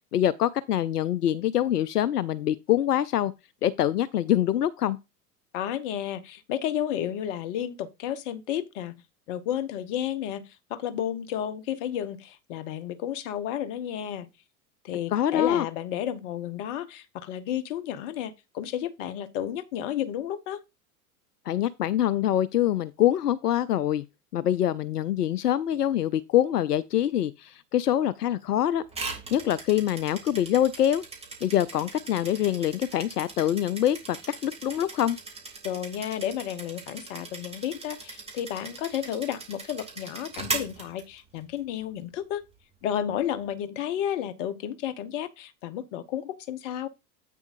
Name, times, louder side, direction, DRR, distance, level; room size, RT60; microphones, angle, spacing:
voice 1, 0.1-3.3 3.6-5.0 15.1-15.7 21.5-24.0 24.3-28.8 29.3-31.0 31.4-34.2 34.4-35.2, left 11 dB, 80° left, 0.5 m, -25 dB
voice 2, 5.5-8.9 9.3-14.3 14.8-20.6 35.6-42.4 42.8-46.9, left 10 dB, 50° left, 1.0 m, -32 dB
sound 1, 28.9-41.6, right 4 dB, 15° right, 2.8 m, -39 dB
8.4 x 7.0 x 2.6 m
figure-of-eight pair, 85°, 46 cm